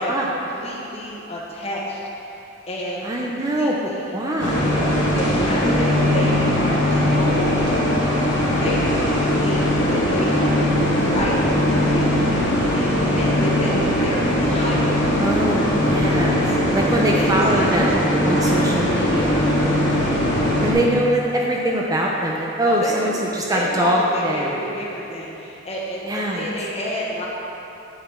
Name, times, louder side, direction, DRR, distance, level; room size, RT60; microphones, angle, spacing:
voice 1, 0.0-4.1 5.1-7.6 8.6-11.4 11.7-15.2 17.1-17.3 17.5-17.9 22.7-27.3, left 1 dB, 30° left, -4 dB, 1.2 m, -30 dB
voice 2, 3.0-4.7 5.5-5.9 15.2-16.4 16.7-19.8 20.6-24.5 26.0-26.5, right 1 dB, 20° right, -2 dB, 0.5 m, -23 dB
sound 1, 4.4-20.7, left 1 dB, 60° left, 1.7 m, -20 dB
8.5 x 4.2 x 5.7 m, 2.9 s
head